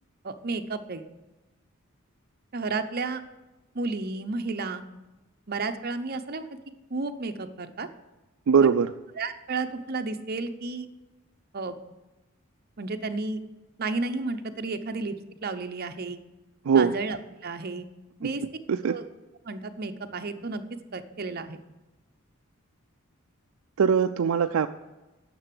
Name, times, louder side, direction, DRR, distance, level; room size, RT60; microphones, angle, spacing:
voice 1, 0.2-1.0 2.5-3.2 3.7-4.8 5.5-6.5 6.9-7.9 8.6-8.7 9.2-10.9 11.5-11.8 12.8-13.4 13.8-15.2 15.4-16.2 16.7-17.2 17.4-17.9 18.2-18.4 18.9-19.0 19.4-20.6 20.9-21.6, right 3 dB, 45° right, 8 dB, 0.8 m, -32 dB
voice 2, 8.5-8.9 16.6-16.9 18.7-19.0 23.8-24.7, right 6 dB, 75° right, 8 dB, 0.4 m, -21 dB
10.0 x 6.8 x 7.6 m, 1.1 s
head